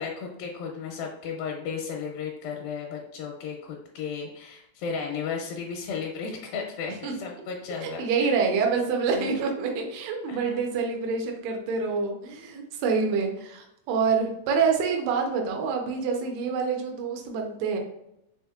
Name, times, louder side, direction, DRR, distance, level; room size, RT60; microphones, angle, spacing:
voice 1, 0.0-8.4 9.1-9.3 10.3-10.6, left 6 dB, 80° left, 0 dB, 2.4 m, -34 dB
voice 2, 7.8-17.8, right 5 dB, 85° right, 1 dB, 1.5 m, -27 dB
6.0 x 3.5 x 2.3 m, 0.83 s
omnidirectional pair, 4.1 m